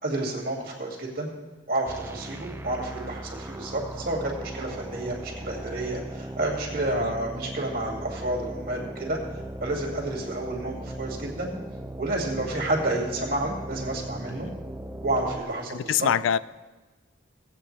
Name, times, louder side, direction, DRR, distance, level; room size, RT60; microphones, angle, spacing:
voice 1, 0.0-1.3 1.7-9.2 9.6-11.5 12.0-14.5 15.0-16.1, right 2 dB, 50° right, -1 dB, 2.4 m, -30 dB
sound 1, 1.9-15.4, right 1 dB, 10° right, 0.4 m, -38 dB
voice 2, 15.7-16.4, left 9 dB, 85° left, 18 dB, 0.3 m, -26 dB
18.0 x 8.4 x 3.3 m, 1.2 s
head